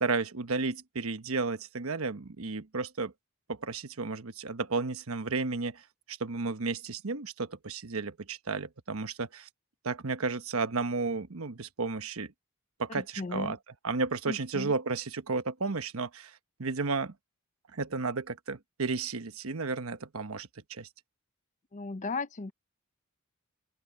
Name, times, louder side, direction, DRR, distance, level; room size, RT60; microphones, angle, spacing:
voice 1, 0.0-3.1 3.5-5.8 6.1-9.5 9.8-12.3 12.8-13.6 13.8-17.1 17.7-20.9, right 4 dB, 85° right, 1.1 m, -33 dB
voice 2, 12.9-13.5 14.3-14.7 21.7-22.5, left 3 dB, 35° left, 0.6 m, -36 dB
open air
head